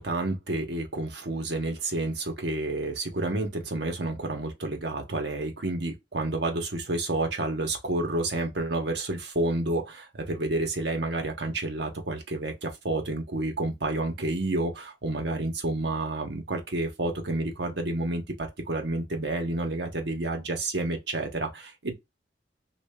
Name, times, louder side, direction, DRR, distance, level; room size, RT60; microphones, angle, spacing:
voice 1, 0.0-21.9, right 2 dB, 70° right, 1.0 m, -30 dB
3.2 x 2.5 x 3.6 m
head